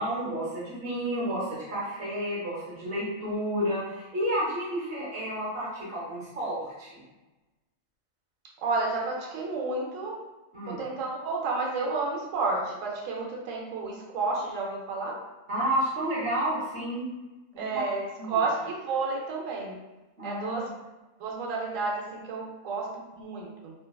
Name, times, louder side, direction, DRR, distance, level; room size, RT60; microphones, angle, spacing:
voice 1, 0.0-7.0 10.5-10.8 15.5-17.1 17.5-17.8 18.2-18.4 20.2-20.7, right 1 dB, 50° right, -8 dB, 0.9 m, -31 dB
voice 2, 8.6-10.2 10.7-15.2 17.6-19.8 20.2-20.7 21.2-23.7, right 3 dB, 75° right, -1 dB, 1.0 m, -31 dB
2.9 x 2.2 x 2.2 m, 1.1 s
omnidirectional pair, 1.4 m